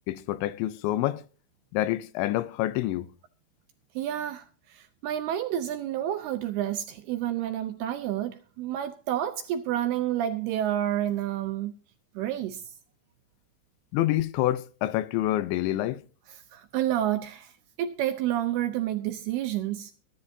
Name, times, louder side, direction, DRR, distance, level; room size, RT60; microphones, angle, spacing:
voice 1, 0.1-1.2 1.7-3.1 13.9-16.0, left 15 dB, 80° left, 3.0 m, -27 dB
voice 2, 4.0-11.7 12.2-12.6 16.3-17.5 17.8-19.9, right 11 dB, 80° right, 2.4 m, -29 dB
23.0 x 10.5 x 2.7 m
omnidirectional pair, 5.3 m